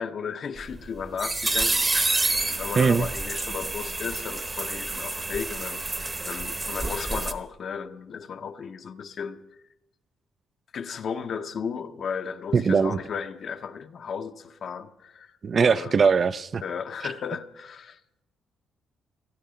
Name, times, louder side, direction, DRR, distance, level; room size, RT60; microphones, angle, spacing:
voice 1, 0.0-9.4 10.7-16.0 16.6-18.0, left 6 dB, 55° left, 0.8 m, -35 dB
sound 1, 0.6-7.3, right 2 dB, 25° right, 1.0 m, -28 dB
voice 2, 2.8-3.1 12.5-13.0 15.4-16.6, right 5 dB, 45° right, 0.5 m, -21 dB
15.5 x 13.0 x 5.1 m
cardioid pair, 90°, 0 cm